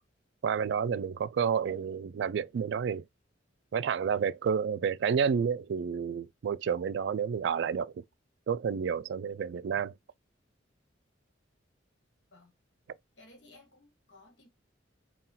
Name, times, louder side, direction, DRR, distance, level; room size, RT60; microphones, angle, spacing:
voice 1, 0.4-3.0 3.7-8.0 8.5-9.9, right 7 dB, 65° right, 0.3 m, -30 dB
voice 2, 13.2-14.5, left 2 dB, 65° left, 1.4 m, -57 dB
4.1 x 2.3 x 3.8 m
head